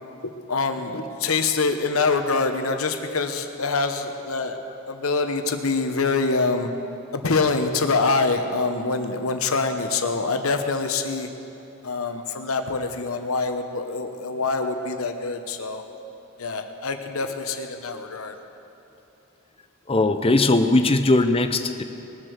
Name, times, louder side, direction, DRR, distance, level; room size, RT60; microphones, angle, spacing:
voice 1, 0.2-4.6 4.9-6.7 7.1-11.3 11.8-15.8 16.4-18.3, left 4 dB, 90° left, 7 dB, 1.1 m, -25 dB
voice 2, 19.9-21.8, left 2 dB, 25° left, 8 dB, 0.6 m, -19 dB
20.0 x 7.8 x 6.5 m, 3.0 s
head